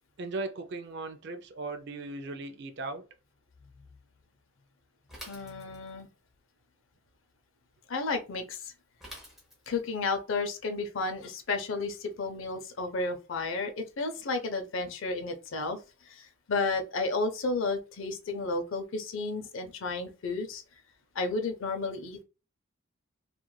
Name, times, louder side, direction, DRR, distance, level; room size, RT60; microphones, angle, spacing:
voice 1, 0.2-3.0, right 3 dB, 55° right, 0.4 m, -37 dB
Bicycle / Mechanisms, 5.1-6.1 9.0-9.9, equal, ahead, 0.8 m, -47 dB
voice 2, 5.3-6.1 7.9-8.7 9.7-15.8 16.0-20.6 21.1-22.2, left 3 dB, 70° left, 0.5 m, -32 dB
3.1 x 2.4 x 2.2 m
head